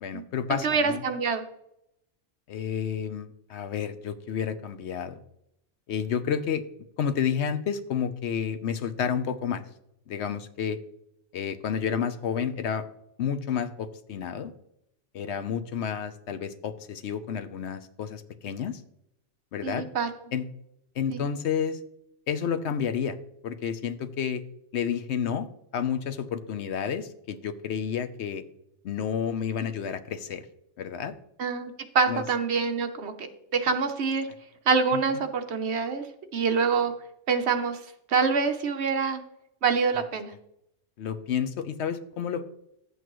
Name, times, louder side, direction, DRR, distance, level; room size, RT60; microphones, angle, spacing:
voice 1, 0.0-1.1 2.5-5.2 5.9-6.6 7.0-9.6 10.1-10.8 11.3-12.8 13.2-14.5 15.1-18.8 19.5-19.8 20.3-20.4 21.0-21.8 22.3-23.2 23.4-24.4 24.7-25.5 25.7-28.4 28.8-30.5 30.8-31.1 32.1-32.2 34.9-35.0 41.0-42.5, left 7 dB, 65° left, 11 dB, 0.9 m, -30 dB
voice 2, 0.6-1.4 19.6-20.1 21.1-21.2 31.4-33.3 33.5-34.3 34.7-36.0 36.3-36.9 37.3-37.8 38.1-39.2 39.6-40.3, right 5 dB, 60° right, 7 dB, 1.1 m, -25 dB
11.0 x 8.1 x 3.1 m, 0.79 s
omnidirectional pair, 1.3 m